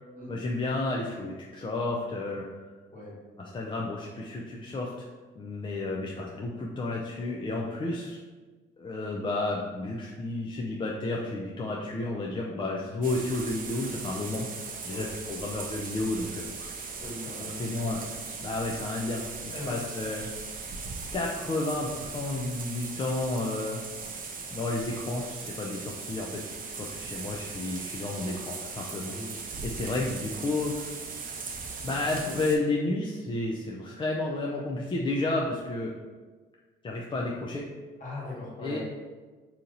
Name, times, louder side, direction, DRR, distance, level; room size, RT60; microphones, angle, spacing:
voice 1, 0.3-2.5 3.4-5.1 5.4-8.2 8.8-14.5 14.8-16.7 17.5-20.3 21.1-23.8 24.5-26.4 26.8-29.2 29.6-31.0 31.8-35.9 36.8-37.6 38.6-38.8, left 2 dB, 25° left, -3 dB, 0.4 m, -31 dB
sound 1, 13.0-32.6, right 4 dB, 45° right, 0.5 m, -39 dB
voice 2, 17.0-17.5 19.5-19.7 29.1-29.3 38.0-38.8, left 2 dB, 40° left, -5 dB, 1.5 m, -39 dB
2.8 x 2.6 x 3.8 m, 1.4 s
cardioid pair, 90°, 20 cm